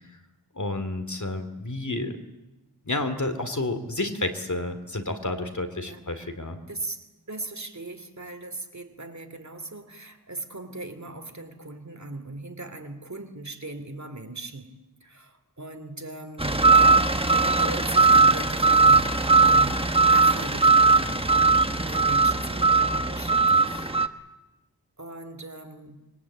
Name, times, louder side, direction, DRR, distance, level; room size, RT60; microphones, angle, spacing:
voice 1, 0.5-2.2 2.9-6.6, left 2 dB, 50° left, 9 dB, 2.6 m, -30 dB
voice 2, 6.7-14.7 15.0-23.9 25.0-26.0, right 2 dB, 45° right, 8 dB, 3.0 m, -39 dB
sound 1, 16.4-24.1, right 3 dB, 15° right, 1.3 m, -19 dB
26.0 x 23.0 x 8.6 m, 1.1 s
wide cardioid pair, 60°, 38 cm